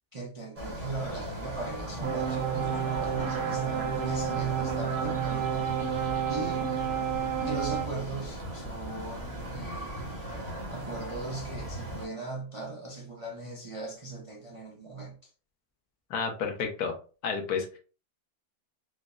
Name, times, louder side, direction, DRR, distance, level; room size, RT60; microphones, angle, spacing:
voice 1, 0.1-5.5 6.3-6.7 7.4-10.1 10.7-15.3, right 3 dB, 55° right, 0.3 m, -39 dB
sound 1, 0.6-12.1, equal, 25° right, 1.1 m, -38 dB
Laughter, 1.8-5.0 5.8-5.9 7.4-7.5, left 4 dB, 60° left, 1.0 m, -46 dB
sound 2, 2.0-7.9, right 8 dB, 75° right, 1.1 m, -30 dB
voice 2, 16.1-17.0 17.2-17.8, left 5 dB, 90° left, 1.3 m, -31 dB
4.8 x 2.0 x 2.4 m
omnidirectional pair, 1.6 m